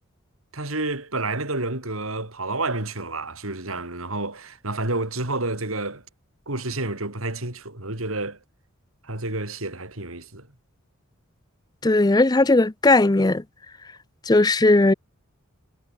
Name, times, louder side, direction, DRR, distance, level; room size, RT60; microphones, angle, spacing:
voice 1, 0.5-6.0 6.5-8.4 9.0-10.5, right 2 dB, 75° right, 4.4 m, -29 dB
voice 2, 11.8-13.4 14.3-14.9, left 2 dB, 20° left, 0.5 m, -17 dB
head